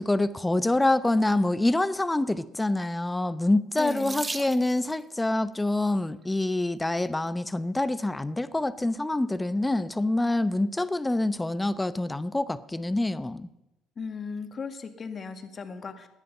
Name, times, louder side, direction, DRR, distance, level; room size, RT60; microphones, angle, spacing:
voice 1, 0.0-13.5, left 2 dB, 10° left, 14 dB, 0.8 m, -26 dB
voice 2, 3.8-4.3 14.0-16.1, left 5 dB, 40° left, 7 dB, 1.7 m, -36 dB
Water tap faucet / Sink (filling or washing), 3.8-5.0 6.0-6.4 7.1-7.2 7.6-7.7, right 3 dB, 20° right, 1.0 m, -38 dB
17.0 x 11.0 x 5.5 m, 0.91 s
supercardioid pair, 80°, 0 cm